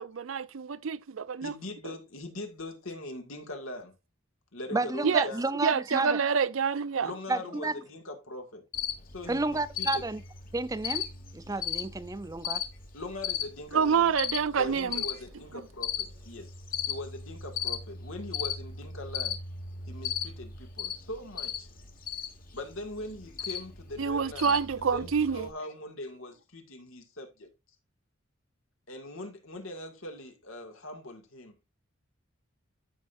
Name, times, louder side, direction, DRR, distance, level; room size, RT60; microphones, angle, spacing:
voice 1, 0.0-1.5 5.0-5.3 5.6-7.1 13.7-15.0 24.0-25.5, right 6 dB, 80° right, 0.5 m, -27 dB
voice 2, 1.4-4.0 4.5-5.5 7.0-8.6 9.0-10.0 12.9-14.1 14.6-16.5 16.9-19.4 19.9-21.7 22.5-27.5 28.9-31.6, left 1 dB, 85° left, 2.1 m, -41 dB
voice 3, 4.7-6.2 7.3-7.7 9.3-10.2 10.5-11.1 11.3-12.7, right 3 dB, 15° right, 0.5 m, -31 dB
Cricket, 8.7-25.5, left 8 dB, 45° left, 1.4 m, -37 dB
13.5 x 5.4 x 2.6 m
head